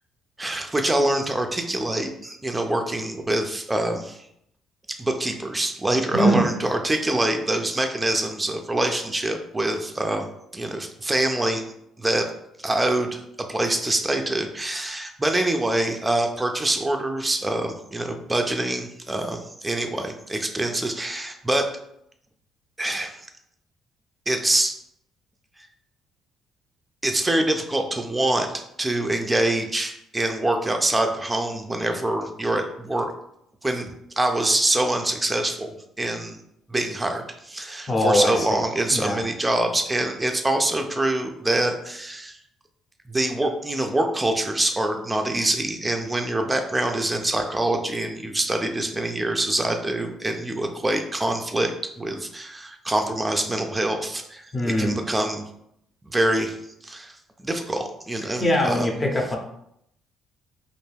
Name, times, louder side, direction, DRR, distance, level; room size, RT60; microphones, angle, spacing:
voice 1, 0.4-4.2 5.0-11.6 12.0-12.3 12.6-13.2 13.5-21.7 22.8-23.2 24.3-24.7 27.0-33.1 33.6-33.9 34.2-36.4 36.7-42.4 43.1-51.7 52.0-55.4 56.0-56.6 56.8-57.1 57.4-58.9, right 1 dB, 15° right, 4 dB, 0.4 m, -25 dB
voice 2, 6.1-6.5 37.9-38.6 38.9-39.2 54.5-55.0 58.4-59.4, equal, 30° left, 0 dB, 0.8 m, -22 dB
2.4 x 2.1 x 3.3 m, 0.75 s
hypercardioid pair, 55°, 0 cm